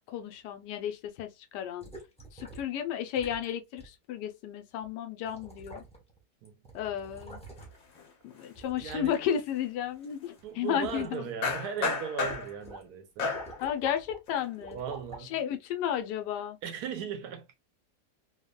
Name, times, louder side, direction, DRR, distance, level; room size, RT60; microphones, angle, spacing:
voice 1, 0.1-1.9 2.3-5.8 6.7-7.4 8.2-11.2 13.6-14.8 15.3-16.6, left 9 dB, 85° left, 1.2 m, -33 dB
sound 1, 1.8-2.8 3.1-3.5 3.8-3.9 4.8-4.9 5.2-6.2 6.4-7.9 8.5-10.1 10.4-11.1 11.6-11.8 12.2-12.8 13.1-14.2 14.6-15.3 16.0-16.1, right 1 dB, 10° left, 0.4 m, -47 dB
sound 2, 7.6-7.7 7.9-8.3 11.4-12.7 13.2-13.6 14.3-14.5, left 4 dB, 60° left, 1.1 m, -32 dB
voice 2, 8.8-9.2 10.4-13.4 14.7-15.4 16.6-17.6, right 8 dB, 75° right, 1.1 m, -38 dB
3.4 x 2.1 x 2.2 m
omnidirectional pair, 1.8 m